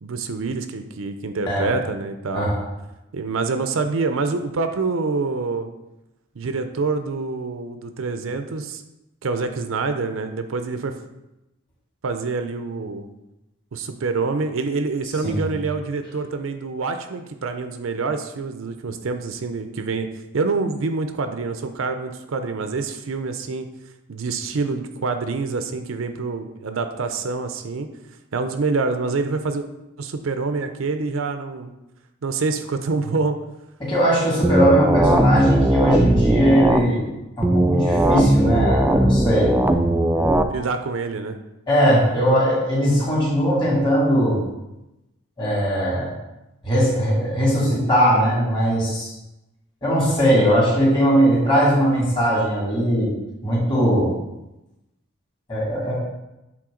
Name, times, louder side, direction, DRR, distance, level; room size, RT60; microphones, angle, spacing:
voice 1, 0.0-2.5 3.1-5.7 6.4-8.8 9.2-10.9 12.0-13.1 13.7-20.1 20.3-23.7 24.1-27.9 28.3-29.7 30.0-31.7 32.2-33.4 40.5-41.4, right 4 dB, 80° right, 8 dB, 0.5 m, -26 dB
voice 2, 33.8-37.1 37.4-39.5 41.7-44.4 45.4-46.1 46.6-49.1 49.8-53.1 53.4-54.1 55.5-55.9, equal, 25° left, -5 dB, 2.2 m, -19 dB
sound 1, 34.4-36.8 37.4-40.4, right 1 dB, 10° right, 0.3 m, -18 dB
7.6 x 3.7 x 3.8 m, 0.95 s
head